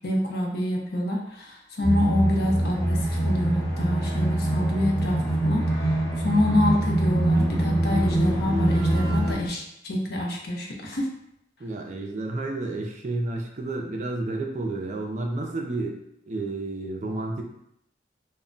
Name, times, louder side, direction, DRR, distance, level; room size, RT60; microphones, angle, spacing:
voice 1, 0.0-11.1, left 1 dB, 60° left, -1 dB, 0.6 m, -27 dB
sound 1, 1.8-9.3, right 1 dB, 20° left, 0.9 m, -24 dB
voice 2, 11.6-17.4, right 2 dB, 40° right, 2 dB, 0.4 m, -31 dB
2.1 x 2.1 x 3.7 m, 0.77 s
head